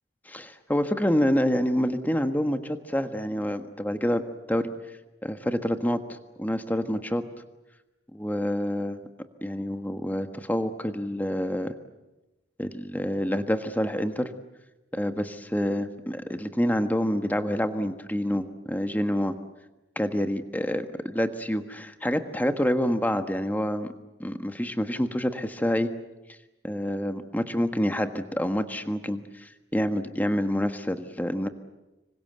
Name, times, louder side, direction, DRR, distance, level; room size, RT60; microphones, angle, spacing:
voice 1, 0.3-2.6 2.9-4.2 4.5-4.7 5.2-7.2 8.1-9.0 9.4-11.7 12.6-14.3 14.9-19.3 19.9-23.9 24.2-25.9 26.6-31.5, equal, 10° left, 8 dB, 1.4 m, -27 dB
26.5 x 24.5 x 8.0 m, 1.0 s
head